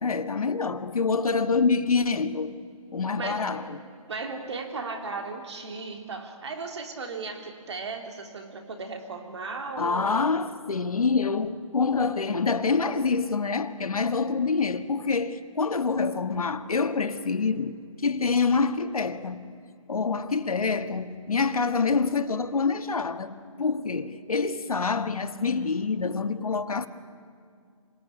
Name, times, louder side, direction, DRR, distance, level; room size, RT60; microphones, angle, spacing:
voice 1, 0.0-2.6 2.9-3.8 9.8-19.4 19.9-26.9, left 4 dB, 85° left, 1.6 m, -26 dB
voice 2, 3.2-3.5 4.1-10.2, right 4 dB, 50° right, 3.4 m, -36 dB
26.5 x 18.0 x 9.9 m
hypercardioid pair, 165°, 18 cm